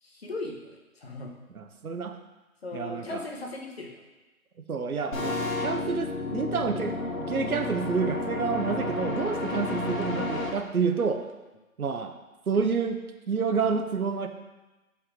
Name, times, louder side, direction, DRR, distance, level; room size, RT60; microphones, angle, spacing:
voice 1, 0.0-1.3 2.6-4.0, left 2 dB, 45° left, 1 dB, 1.2 m, -38 dB
voice 2, 1.5-2.2 2.7-3.2 4.7-7.0 7.3-11.2 11.8-12.2 12.5-13.0 13.3-14.3, right 5 dB, 80° right, 6 dB, 1.0 m, -29 dB
sound 1, 5.1-10.5, left 2 dB, 65° left, 1.9 m, -31 dB
6.1 x 5.6 x 5.0 m, 1.1 s
figure-of-eight pair, 170°, 43 cm